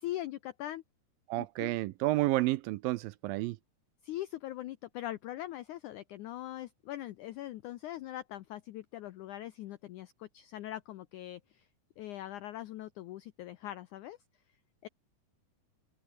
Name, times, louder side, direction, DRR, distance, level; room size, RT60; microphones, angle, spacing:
voice 1, 0.0-0.8 1.4-1.8 4.0-11.7 12.0-14.2 14.8-14.9, left 14 dB, 80° left, 1.7 m, -41 dB
voice 2, 1.3-3.6, right 18 dB, 80° right, 2.2 m, -30 dB
omnidirectional pair, 4.5 m